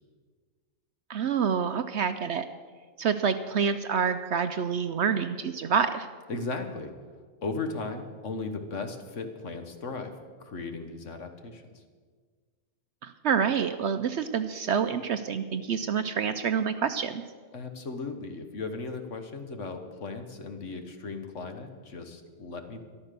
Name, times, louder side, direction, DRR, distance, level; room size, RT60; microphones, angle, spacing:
voice 1, 1.1-2.5 3.0-6.1 13.0-17.2, right 7 dB, 65° right, 10 dB, 0.8 m, -27 dB
voice 2, 6.3-6.9 7.4-10.1 10.4-11.8 17.5-22.8, left 3 dB, 60° left, 6 dB, 1.6 m, -36 dB
13.5 x 11.5 x 6.7 m, 1.5 s
omnidirectional pair, 1.5 m